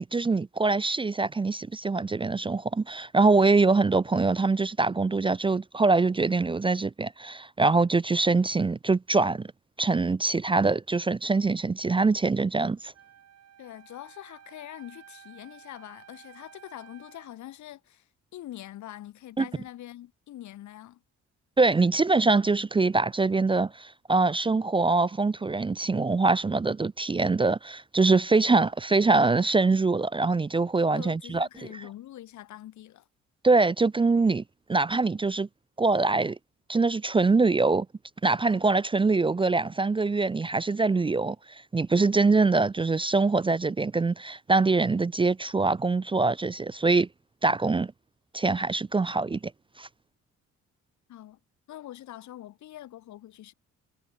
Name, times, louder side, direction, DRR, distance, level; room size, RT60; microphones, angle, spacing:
voice 1, 0.0-9.5 9.8-12.9 19.4-19.5 21.6-31.5 33.4-34.4 34.7-35.5 35.8-36.4 36.7-37.9 38.2-47.1 47.4-47.9 48.3-49.4 49.8-49.9, right 3 dB, 15° right, 0.5 m, -24 dB
Wind instrument woodwind instrument, 12.9-17.4, right 9 dB, 55° right, 3.4 m, -53 dB
voice 2, 13.6-18.0 18.3-21.0 30.9-33.0 51.1-51.4 51.7-53.5, left 13 dB, 70° left, 1.2 m, -44 dB
cardioid pair, 90°, 30 cm